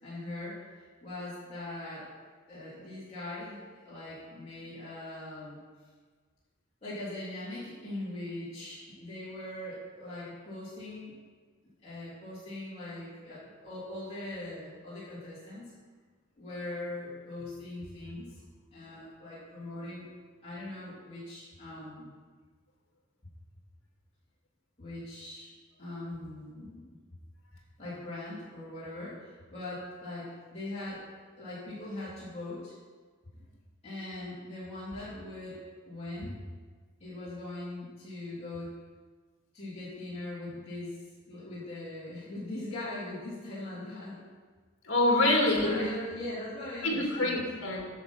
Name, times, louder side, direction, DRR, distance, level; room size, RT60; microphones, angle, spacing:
voice 1, 0.0-2.1 2.5-5.6 6.8-11.1 11.8-15.7 16.4-18.4 18.7-20.1 20.4-22.1 24.8-25.5 25.8-27.0 27.8-31.0 31.3-32.8 33.8-36.4 37.0-38.7 39.5-40.9 41.3-44.2 45.4-47.4, left 1 dB, 30° left, -12 dB, 3.5 m, -41 dB
voice 2, 44.8-45.8 46.8-47.9, left 2 dB, 60° left, -1 dB, 2.5 m, -26 dB
10.0 x 6.7 x 5.9 m, 1.5 s
head